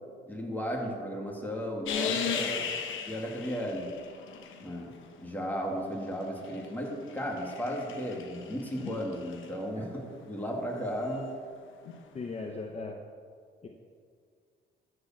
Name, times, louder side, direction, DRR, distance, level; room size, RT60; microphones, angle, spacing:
voice 1, 0.3-2.5 3.1-3.9 4.6-4.9 5.2-11.3, equal, 10° left, -1 dB, 2.5 m, -35 dB
sound 1, 1.9-5.0 6.0-9.5 11.8-12.0, left 7 dB, 80° left, 1.1 m, -37 dB
voice 2, 2.3-2.7 12.1-13.0 13.6-13.7, left 3 dB, 35° left, 2 dB, 0.9 m, -38 dB
13.0 x 5.0 x 7.5 m, 2.1 s
cardioid pair, 90°, 20 cm